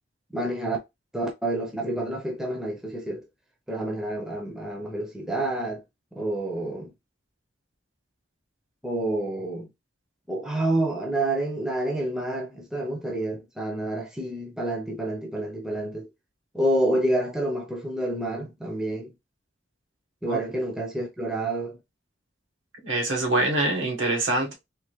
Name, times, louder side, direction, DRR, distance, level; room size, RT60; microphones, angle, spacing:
voice 1, 0.3-0.8 1.1-3.3 3.7-5.8 6.1-6.9 8.8-9.7 10.3-16.1 16.5-19.1 20.2-21.8, right 1 dB, 5° right, 0.6 m, -28 dB
voice 2, 22.8-24.5, right 2 dB, 75° right, 1.3 m, -24 dB
3.5 x 2.7 x 3.0 m
head